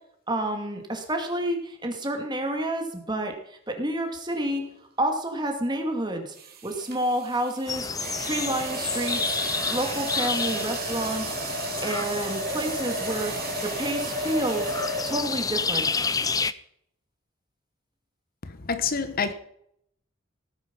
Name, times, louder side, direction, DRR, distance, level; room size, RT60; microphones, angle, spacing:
voice 1, 0.3-4.6 5.0-6.3 6.6-7.9 8.2-9.4 9.7-11.4 11.8-14.7 15.0-15.9, right 1 dB, 20° right, 2.4 m, -29 dB
sound 1, 4.4-4.7 6.4-15.6, right 2 dB, 50° right, 2.8 m, -33 dB
sound 2, 7.7-16.5, left 5 dB, 20° left, 0.5 m, -30 dB
voice 2, 18.7-19.3, left 5 dB, 45° left, 1.0 m, -26 dB
17.0 x 9.9 x 5.5 m
head